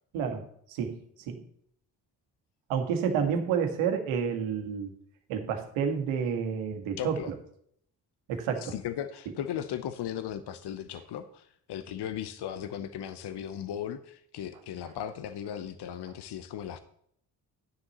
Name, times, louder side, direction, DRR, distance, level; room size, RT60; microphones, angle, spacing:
voice 1, 0.1-1.0 1.3-1.4 2.7-4.9 5.3-7.3 8.3-8.7, right 7 dB, 75° right, 5 dB, 1.7 m, -30 dB
voice 2, 7.0-7.3 8.6-16.8, left 10 dB, 55° left, 11 dB, 0.9 m, -37 dB
12.5 x 9.6 x 3.1 m, 0.69 s
hypercardioid pair, 40°, 48 cm